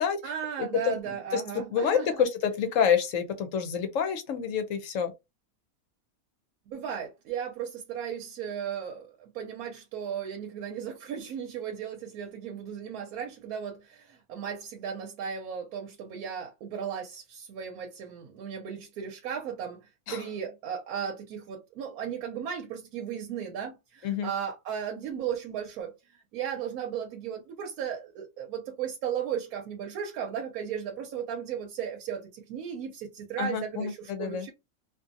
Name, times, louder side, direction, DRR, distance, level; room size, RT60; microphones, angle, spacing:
voice 1, 0.2-2.2 6.7-34.5, right 8 dB, 85° right, 1.1 m, -36 dB
voice 2, 1.7-5.1 20.1-20.2 24.0-24.3 33.4-34.5, left 7 dB, 70° left, 0.9 m, -27 dB
2.6 x 2.5 x 2.5 m
omnidirectional pair, 1.5 m